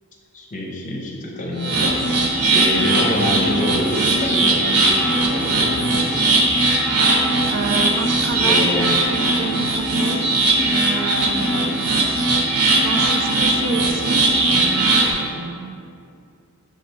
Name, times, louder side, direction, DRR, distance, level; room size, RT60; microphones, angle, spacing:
voice 1, 0.3-2.3 2.5-6.0 8.4-9.0 11.5-11.7, left 1 dB, 35° left, -1 dB, 0.9 m, -26 dB
sound 1, 1.6-15.1, right 2 dB, 90° right, 1.0 m, -19 dB
voice 2, 7.5-8.7 9.0-10.2 10.6-11.7 12.2-15.8, right 4 dB, 55° right, 6 dB, 0.4 m, -29 dB
5.2 x 3.8 x 5.4 m, 2.5 s
head